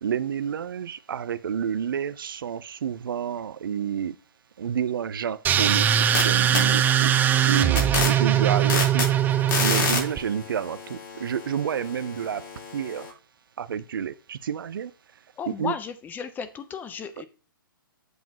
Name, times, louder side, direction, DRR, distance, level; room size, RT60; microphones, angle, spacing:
voice 1, 0.0-4.1 4.6-7.1 7.4-9.1 9.6-12.4 12.7-13.1 13.6-14.9 15.5-15.7, right 8 dB, 70° right, 0.6 m, -29 dB
sound 1, 5.4-10.2, right 10 dB, 15° right, 0.4 m, -21 dB
sound 2, 5.7-6.2 6.5-13.1, left 4 dB, 70° left, 3.8 m, -31 dB
voice 2, 15.4-17.2, left 7 dB, 15° left, 0.8 m, -34 dB
8.1 x 7.0 x 3.0 m
hypercardioid pair, 130°, 12 cm